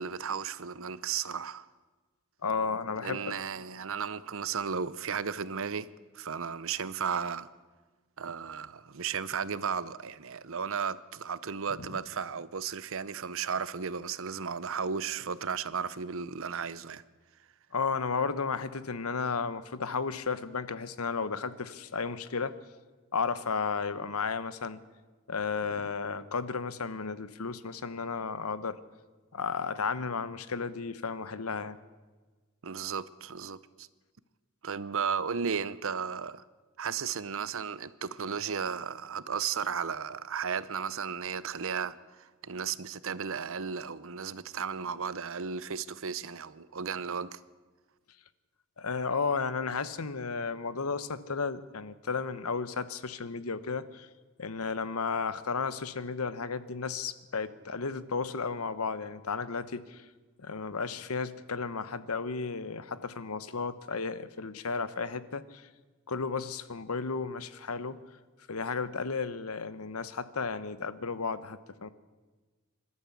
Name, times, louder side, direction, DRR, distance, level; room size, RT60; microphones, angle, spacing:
voice 1, 0.0-1.7 3.0-5.9 6.1-7.5 8.2-17.0 32.6-33.9 34.6-36.4 36.8-47.4, right 6 dB, 65° right, 0.8 m, -34 dB
voice 2, 2.4-3.4 11.8-11.9 17.7-22.6 23.1-24.8 25.3-28.8 29.3-31.8 48.8-54.1 54.4-60.0 60.4-65.7 66.1-68.0 68.5-71.9, left 5 dB, 80° left, 1.1 m, -33 dB
26.0 x 12.5 x 8.3 m
head